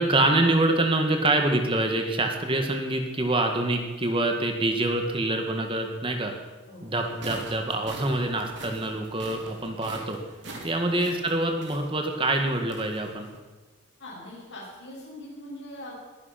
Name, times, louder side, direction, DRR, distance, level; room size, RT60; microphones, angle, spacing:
voice 1, 0.0-6.3 6.8-10.2 10.6-13.3, right 2 dB, 25° right, 4 dB, 1.8 m, -25 dB
sound 1, 6.9-13.4, right 2 dB, 60° right, 3.0 m, -44 dB
voice 2, 14.0-15.9, left 1 dB, 85° left, -9 dB, 5.7 m, -42 dB
21.0 x 10.5 x 5.9 m, 1.3 s
head